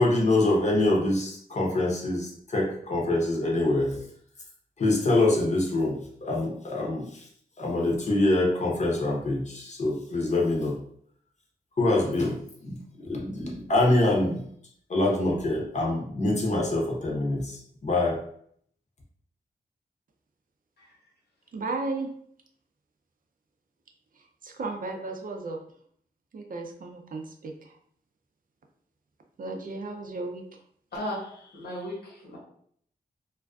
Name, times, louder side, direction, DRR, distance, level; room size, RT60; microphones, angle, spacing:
voice 1, 0.0-4.0 4.8-7.3 7.6-10.8 11.8-14.5 14.9-18.2, left 2 dB, 45° left, -1 dB, 0.7 m, -25 dB
voice 2, 21.5-22.1 24.4-25.6 26.3-27.7 29.4-30.4, right 3 dB, 55° right, 3 dB, 0.4 m, -34 dB
voice 3, 30.9-32.4, equal, 80° left, -4 dB, 1.0 m, -36 dB
2.4 x 2.2 x 2.3 m, 0.64 s
wide cardioid pair, 75°, 17 cm